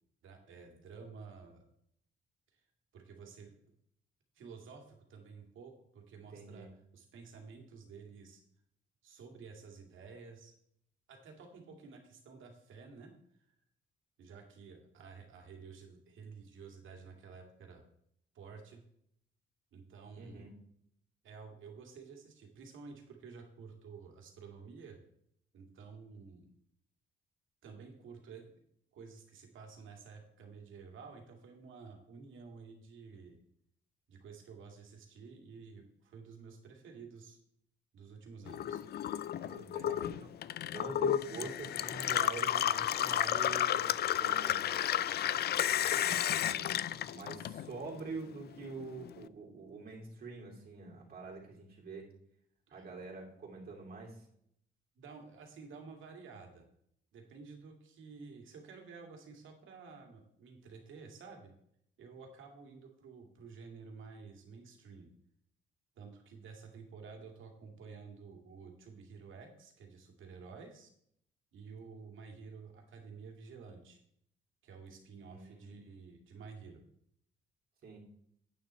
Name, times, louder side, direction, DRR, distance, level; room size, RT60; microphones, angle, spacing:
voice 1, 0.2-1.6 2.9-3.5 4.3-8.4 9.0-10.5 11.1-13.1 14.2-17.8 18.3-18.8 19.7-20.5 21.2-25.0 25.5-26.5 27.6-28.6 28.9-33.4 34.1-37.4 37.9-38.8 52.7-52.9 55.0-56.6 57.1-61.5 62.0-65.1 66.0-70.9 71.5-74.0 74.6-76.8, right 5 dB, 85° right, 3 dB, 2.3 m, -51 dB
voice 2, 6.1-6.7 20.2-20.5 39.4-40.5 40.7-44.7 45.9-52.1 52.7-54.2 75.2-75.7 77.8-78.0, right 4 dB, 50° right, -2 dB, 2.8 m, -46 dB
Gurgling / Water tap faucet / Sink (filling or washing), 38.5-48.0 48.3-49.2, left 11 dB, 55° left, 0.4 m, -32 dB
9.5 x 8.7 x 4.4 m, 0.70 s
cardioid pair, 140°, 20 cm